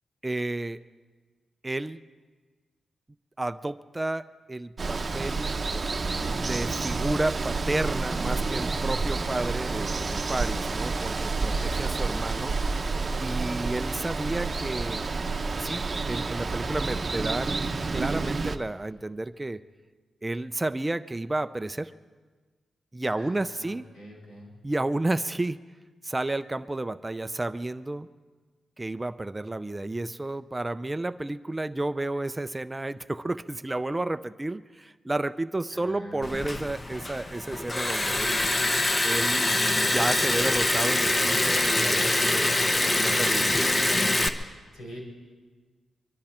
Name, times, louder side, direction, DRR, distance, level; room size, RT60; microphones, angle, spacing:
voice 1, 0.2-0.8 1.6-2.0 3.4-5.5 6.4-12.5 13.2-15.0 15.5-19.6 20.2-21.9 22.9-23.8 24.6-25.6 26.0-28.1 28.8-38.4 39.0-39.6 39.9-42.5 43.0-43.7, right 2 dB, 15° right, 12 dB, 0.4 m, -31 dB
Water, 4.8-18.6, right 3 dB, 35° right, 0.8 m, -29 dB
voice 2, 23.1-24.5 35.7-36.5 44.7-45.0, equal, 85° left, -3 dB, 5.9 m, -45 dB
Liquid, 36.2-44.3, left 1 dB, 25° left, 0.8 m, -24 dB
23.0 x 13.0 x 4.3 m, 1.4 s
wide cardioid pair, 115°, 0 cm